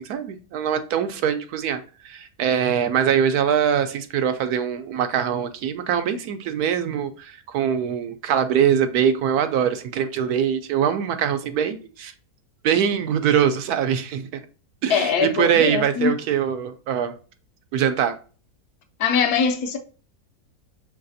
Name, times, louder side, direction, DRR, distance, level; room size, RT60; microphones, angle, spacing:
voice 1, 0.0-12.1 12.6-14.3 14.8-17.2 17.7-18.2, right 8 dB, 75° right, 1.0 m, -23 dB
voice 2, 14.9-16.1 19.0-19.8, left 6 dB, 75° left, 1.2 m, -22 dB
5.5 x 3.3 x 2.6 m
omnidirectional pair, 1.7 m